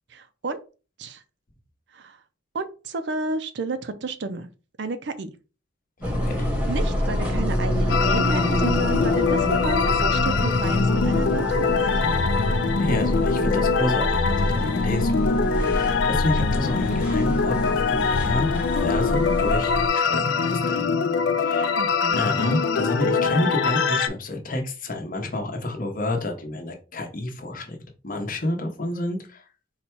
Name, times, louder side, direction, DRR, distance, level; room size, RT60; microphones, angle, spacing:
voice 1, 0.1-0.6 1.0-1.2 1.9-2.2 2.5-4.5 4.8-5.3 6.7-11.7 19.3-19.5 21.8-22.2, right 3 dB, 60° right, 10 dB, 0.5 m, -31 dB
voice 2, 6.0-6.5 12.0-12.2 12.8-18.5 18.8-20.9 21.4-21.8 22.1-27.8 28.0-29.4, left 1 dB, 45° left, 3 dB, 0.8 m, -29 dB
sound 1, 6.0-19.9, left 1 dB, 5° right, 1.0 m, -26 dB
sound 2, 7.9-24.1, left 5 dB, 60° left, 0.4 m, -23 dB
4.1 x 2.2 x 4.4 m, 0.34 s
head